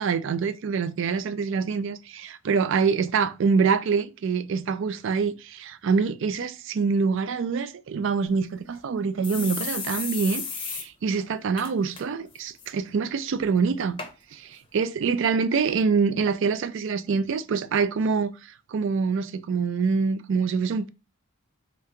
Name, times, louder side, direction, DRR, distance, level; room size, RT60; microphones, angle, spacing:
voice 1, 0.0-14.0 14.3-20.9, right 5 dB, 60° right, 0.4 m, -25 dB
sound 1, 8.3-8.4 8.7-8.8 9.2-10.9 11.2-11.3 11.6-12.0 12.4-12.7 13.4-13.5 14.0-14.1 14.8-14.9, left 5 dB, 25° left, 0.6 m, -33 dB
3.3 x 2.9 x 3.6 m
head